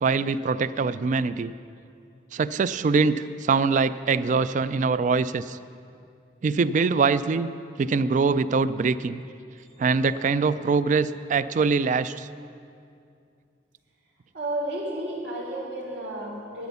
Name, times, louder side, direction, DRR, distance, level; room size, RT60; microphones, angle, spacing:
voice 1, 0.0-1.5 2.3-5.6 6.4-7.5 7.8-9.2 9.8-12.3, right 4 dB, 45° right, 15 dB, 0.3 m, -23 dB
voice 2, 14.3-16.7, right 1 dB, 85° right, -3 dB, 3.3 m, -32 dB
12.0 x 9.6 x 6.9 m, 2.5 s
head